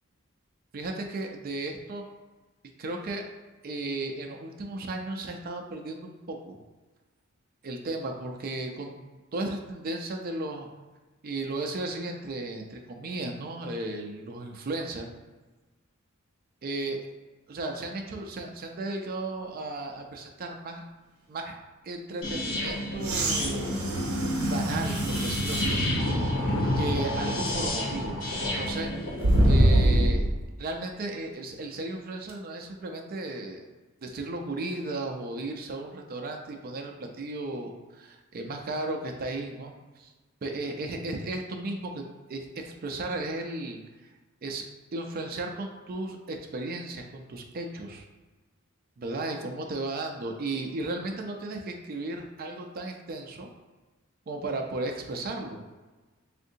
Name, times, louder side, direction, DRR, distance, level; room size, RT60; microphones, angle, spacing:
voice 1, 0.7-2.1 2.8-3.2 3.6-6.6 7.6-10.7 11.2-15.1 16.6-17.0 17.5-20.8 21.3-21.6 21.8-23.7 24.4-25.8 26.8-28.2 28.6-28.9 29.4-30.2 30.6-33.7 34.0-40.1 40.4-42.0 42.3-43.8 44.4-44.6 44.9-48.0 49.0-53.5 54.3-55.6, right 2 dB, 45° right, 2 dB, 0.4 m, -35 dB
sound 1, 22.2-30.1, left 1 dB, 65° left, 0.8 m, -29 dB
sound 2, 23.0-25.8 26.4-26.5 29.2-30.4 32.3-32.4, right 1 dB, 85° right, 0.7 m, -24 dB
3.6 x 2.5 x 2.7 m, 1.2 s
head